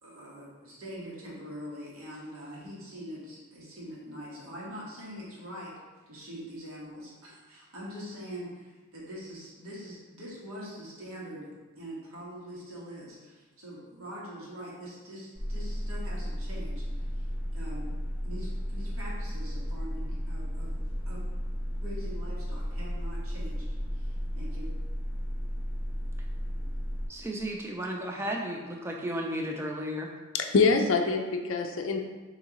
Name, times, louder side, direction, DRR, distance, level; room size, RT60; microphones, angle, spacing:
voice 1, 0.0-5.7 6.1-11.5 11.7-17.3 17.5-17.9 18.2-20.7 21.1-21.2 21.8-23.6 23.9-24.7 26.6-26.8, equal, 75° right, -6 dB, 1.5 m, -43 dB
sound 1, 15.3-27.1, equal, 45° right, 1.5 m, -34 dB
voice 2, 27.1-30.1, equal, 10° right, 0 dB, 0.4 m, -34 dB
voice 3, 30.3-32.0, left 4 dB, 65° left, 4 dB, 0.4 m, -25 dB
6.3 x 2.8 x 2.9 m, 1.3 s
head